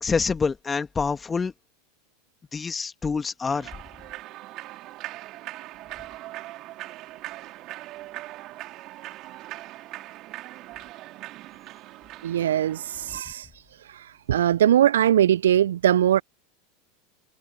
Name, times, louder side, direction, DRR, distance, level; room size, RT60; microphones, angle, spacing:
voice 1, 0.0-1.5 2.5-3.7, left 5 dB, 20° left, 2.5 m, -26 dB
Human voice / Clapping / Cheering, 3.5-13.2, right 17 dB, 45° right, 4.2 m, -41 dB
voice 2, 12.2-13.5 14.3-16.2, right 11 dB, 75° right, 0.4 m, -20 dB
hypercardioid pair, 85°, 0 cm